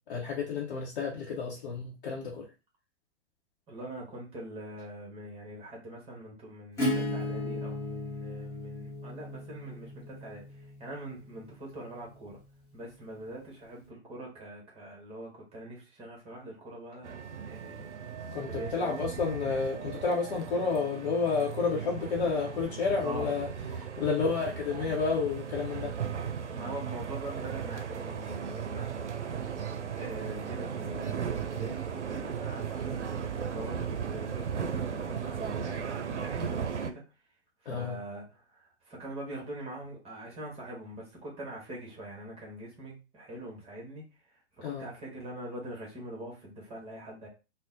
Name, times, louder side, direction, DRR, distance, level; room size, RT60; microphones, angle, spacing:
voice 1, 0.1-2.5 18.3-23.5 24.0-25.9 37.7-38.0 44.6-44.9, left 5 dB, 50° left, -3 dB, 0.8 m, -30 dB
voice 2, 3.7-10.4 10.8-12.4 12.7-17.1 17.5-17.9 18.4-19.0 23.0-23.3 26.5-28.9 29.9-37.0 37.6-44.0 44.6-47.3, right 1 dB, 15° right, -2 dB, 1.0 m, -43 dB
Acoustic guitar / Strum, 6.8-12.3, left 1 dB, 10° left, 0.8 m, -36 dB
sound 1, 17.0-36.9, right 7 dB, 80° right, 0.5 m, -36 dB
3.7 x 2.0 x 2.5 m, 0.30 s
figure-of-eight pair, 105°, 35 cm